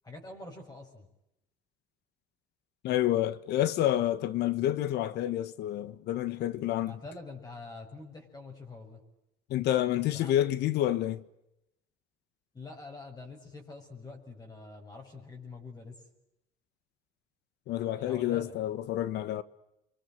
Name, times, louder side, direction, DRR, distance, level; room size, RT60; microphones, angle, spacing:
voice 1, 0.0-1.1 6.8-9.0 10.1-10.3 12.5-16.0 18.0-18.5, left 3 dB, 20° left, 7.1 m, -45 dB
voice 2, 2.8-7.0 9.5-11.2 17.7-19.4, left 13 dB, 80° left, 1.5 m, -29 dB
29.5 x 25.5 x 7.9 m
cardioid pair, 110°, 17 cm